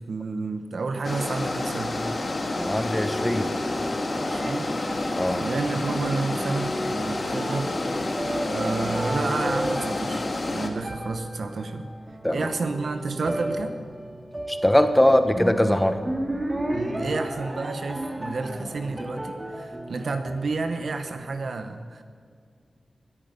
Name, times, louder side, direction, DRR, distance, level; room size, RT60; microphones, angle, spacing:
voice 1, 0.0-2.0 4.1-8.1 8.5-10.2 10.5-11.9 12.3-13.7 16.7-22.0, right 3 dB, 75° right, 7 dB, 1.1 m, -30 dB
sound 1, 1.0-10.7, left 2 dB, 50° left, 1.8 m, -29 dB
sound 2, 2.4-21.0, right 1 dB, 25° right, 2.0 m, -34 dB
voice 2, 2.6-3.5 5.2-5.5 12.2-12.4 14.5-16.0, left 1 dB, 15° left, 8 dB, 1.2 m, -21 dB
20.5 x 9.6 x 5.3 m, 2.1 s
cardioid pair, 60°, 0 cm